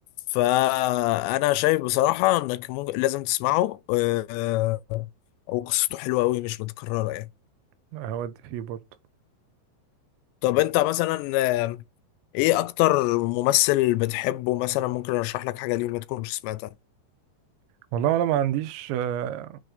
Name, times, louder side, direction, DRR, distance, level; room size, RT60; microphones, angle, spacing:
voice 1, 0.3-5.1 5.5-7.3 10.4-11.8 12.3-16.6, left 17 dB, 85° left, 2.7 m, -24 dB
voice 2, 7.9-8.8 17.9-19.6, right 11 dB, 90° right, 2.9 m, -27 dB
7.3 x 3.4 x 5.1 m
omnidirectional pair, 5.1 m